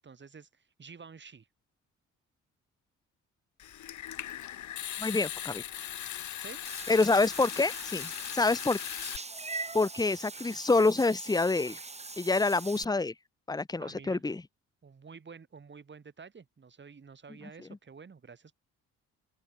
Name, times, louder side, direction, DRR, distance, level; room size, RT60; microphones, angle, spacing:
voice 1, 0.0-1.5 6.4-6.6 13.8-14.2 14.8-18.5, right 5 dB, 40° right, 7.9 m, -50 dB
Water tap faucet / Sink (filling or washing) / Trickle dribble, 3.6-9.2, left 12 dB, 70° left, 3.7 m, -39 dB
voice 2, 5.0-5.6 6.9-8.8 9.7-11.8 12.2-13.1 13.5-14.4, left 3 dB, 15° left, 1.2 m, -27 dB
Meow / Water / Bathtub (filling or washing), 6.6-12.8, right 3 dB, 20° right, 3.4 m, -42 dB
open air
cardioid pair, 90°, 30 cm